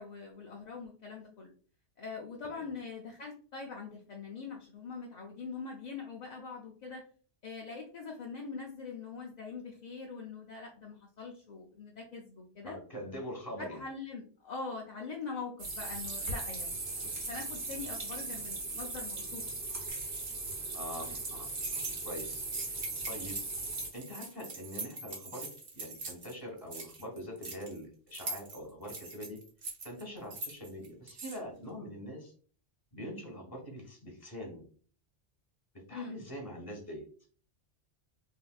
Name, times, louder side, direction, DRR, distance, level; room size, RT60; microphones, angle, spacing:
voice 1, 0.0-1.5 2.0-7.0 7.4-12.8 13.6-19.4 35.9-36.2, left 4 dB, 55° left, -1 dB, 0.5 m, -43 dB
voice 2, 12.6-13.8 20.7-23.4 23.9-25.5 25.7-29.4 29.8-32.3 32.9-34.6 35.9-37.0, equal, 20° left, -1 dB, 1.2 m, -44 dB
sound 1, 15.6-23.9, right 3 dB, 85° right, 1.3 m, -38 dB
sound 2, 19.9-20.3 21.4-26.3 26.6-27.8 28.1-31.4, right 3 dB, 55° right, 1.0 m, -42 dB
3.3 x 2.8 x 2.3 m, 0.43 s
omnidirectional pair, 1.1 m